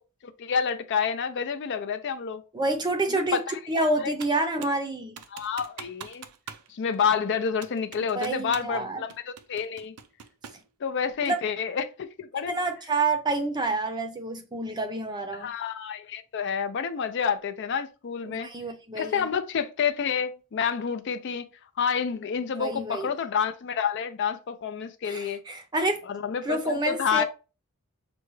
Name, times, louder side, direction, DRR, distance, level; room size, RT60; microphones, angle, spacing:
voice 1, 0.2-2.4 3.1-3.6 4.0-4.1 5.3-6.3 6.7-9.9 10.8-12.6 15.4-18.5 19.0-21.5 21.8-25.4 26.1-27.2, left 6 dB, 55° left, 0.4 m, -29 dB
voice 2, 2.5-3.4 3.7-5.2 8.0-9.0 10.5-10.6 11.2-11.4 12.5-15.5 18.2-19.3 22.6-23.1 25.1-26.0 26.4-27.2, right 2 dB, 20° right, 0.5 m, -28 dB
Computer keyboard, 4.2-4.8 5.2-6.7 6.9-7.0 7.6-8.8 9.1-10.7, right 7 dB, 90° right, 0.5 m, -43 dB
5.9 x 2.3 x 3.1 m
head